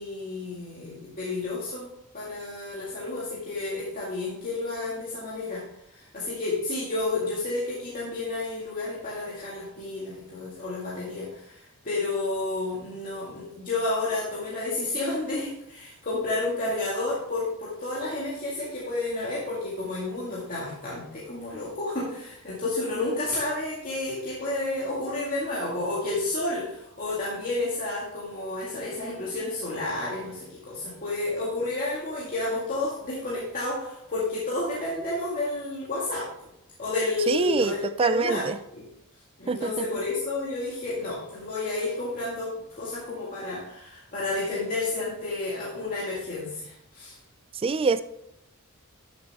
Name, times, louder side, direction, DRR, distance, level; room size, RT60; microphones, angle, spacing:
voice 1, 0.0-1.9 2.1-5.6 5.9-36.3 36.8-38.5 38.7-38.8 39.4-47.2, left 2 dB, 40° left, -6 dB, 2.0 m, -31 dB
voice 2, 37.3-38.6 39.5-39.9 47.5-48.0, right 4 dB, 25° right, 13 dB, 0.3 m, -25 dB
12.0 x 6.6 x 3.5 m, 0.78 s
head